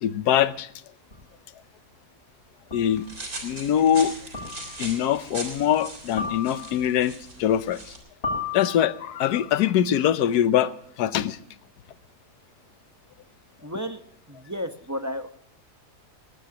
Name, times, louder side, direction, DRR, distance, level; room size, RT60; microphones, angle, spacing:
voice 1, 0.0-0.7 2.7-3.0 3.4-4.1 4.8-7.8 8.5-11.4, left 10 dB, 80° left, 1.3 m, -23 dB
sound 1, 1.1-1.2 2.7-3.1 4.3-4.9 6.2-6.9 8.2-9.2, left 4 dB, 40° left, 7.8 m, -34 dB
sound 2, 2.9-8.0, right 2 dB, 65° right, 4.2 m, -40 dB
voice 2, 13.6-14.0 14.3-15.3, equal, 15° right, 0.7 m, -32 dB
19.0 x 18.5 x 2.9 m
omnidirectional pair, 1.7 m